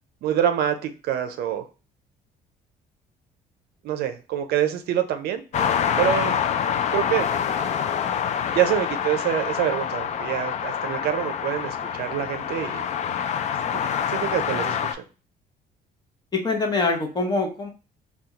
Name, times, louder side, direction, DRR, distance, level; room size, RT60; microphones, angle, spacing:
voice 1, 0.2-1.6 3.8-5.4 6.0-6.4 6.9-7.3 8.5-13.2 13.7-13.8 14.1-14.8, right 10 dB, 70° right, 8 dB, 0.5 m, -26 dB
sound 1, 5.5-14.9, left 8 dB, 45° left, 0.4 m, -26 dB
voice 2, 16.3-17.7, left 3 dB, 25° left, 3 dB, 0.8 m, -24 dB
3.5 x 2.3 x 2.8 m, 0.33 s
cardioid pair, 110°, 17 cm